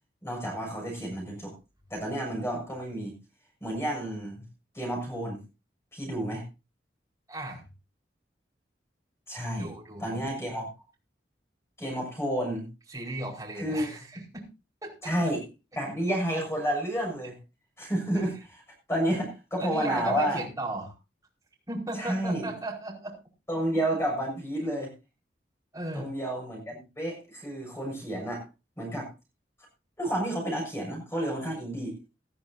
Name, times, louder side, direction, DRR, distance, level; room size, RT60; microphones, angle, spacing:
voice 1, 0.2-1.5 1.9-3.2 3.6-4.4 4.7-5.4 5.9-6.4 9.3-9.7 10.0-10.7 11.8-12.7 13.5-13.9 15.0-15.4 15.7-17.4 17.8-18.6 18.9-20.4 22.0-22.5 23.5-24.9 25.9-28.4 28.8-29.1 30.0-31.9, right 1 dB, 15° left, 0 dB, 6.7 m, -30 dB
voice 2, 7.3-7.6 9.5-10.3 12.9-14.5 14.8-15.1 18.1-18.3 19.6-20.9 21.7-23.1 25.7-26.1, right 2 dB, 20° right, -3 dB, 4.9 m, -36 dB
19.0 x 13.0 x 2.8 m, 0.28 s
head